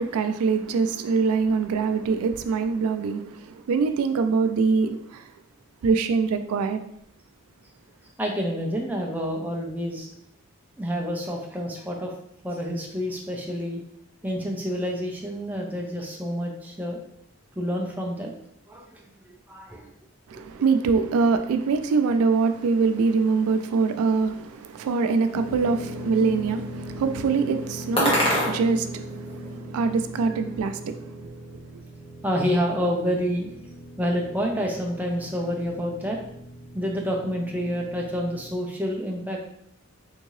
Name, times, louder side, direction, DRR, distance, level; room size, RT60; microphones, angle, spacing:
voice 1, 0.0-5.2 5.8-6.8 20.3-31.4, right 4 dB, 80° right, 0.3 m, -24 dB
voice 2, 8.2-10.1 10.8-12.1 12.4-13.8 14.2-17.0 17.6-18.3 18.7-19.1 19.5-19.9 20.5-20.6 32.2-33.5 34.0-36.2 36.7-39.4, equal, 10° right, 0.4 m, -28 dB
sound 1, 22.3-29.6, left 1 dB, 25° left, 1.1 m, -31 dB
sound 2, 25.3-38.5, equal, 55° left, 0.6 m, -39 dB
3.5 x 2.7 x 3.1 m
head